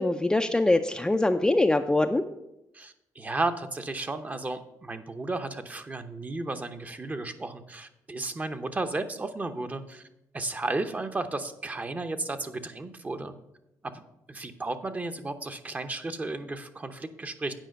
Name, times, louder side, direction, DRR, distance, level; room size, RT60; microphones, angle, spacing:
voice 1, 0.0-2.2, left 2 dB, 10° left, 6 dB, 0.4 m, -23 dB
voice 2, 2.7-10.0 10.3-13.3 13.8-14.0 14.3-17.6, right 2 dB, 25° right, 8 dB, 0.8 m, -33 dB
9.0 x 5.0 x 6.3 m, 0.87 s
cardioid pair, 95°, 7 cm